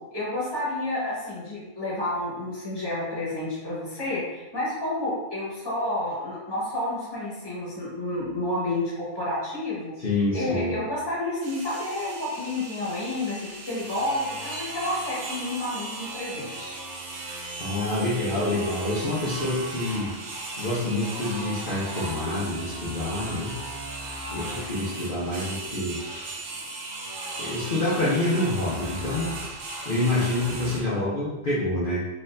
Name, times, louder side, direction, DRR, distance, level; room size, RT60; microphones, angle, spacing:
voice 1, 0.1-9.9 10.3-16.8, left 1 dB, 20° left, -7 dB, 1.3 m, -30 dB
voice 2, 10.0-10.7 17.6-20.1 20.6-23.5 24.3-26.0 27.4-29.4 29.8-32.0, left 1 dB, 50° left, -8 dB, 0.9 m, -27 dB
sound 1, 11.4-30.8, right 2 dB, 85° right, 1.1 m, -36 dB
4.2 x 2.8 x 2.6 m, 1.1 s
omnidirectional pair, 1.2 m